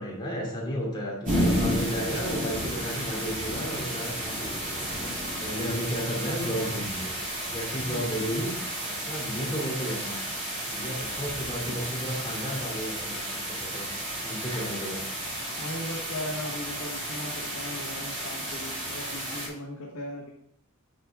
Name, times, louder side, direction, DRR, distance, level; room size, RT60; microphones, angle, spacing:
voice 1, 0.0-4.9 5.4-7.1 7.5-8.5 8.8-10.2 10.7-13.9 14.2-15.0, equal, 20° left, -2 dB, 2.7 m, -33 dB
sound 1, 1.2-19.5, right 1 dB, 35° right, 3.5 m, -32 dB
voice 2, 7.9-8.3 15.6-20.3, left 1 dB, 75° left, -3 dB, 1.4 m, -38 dB
9.6 x 6.3 x 3.5 m, 0.75 s
head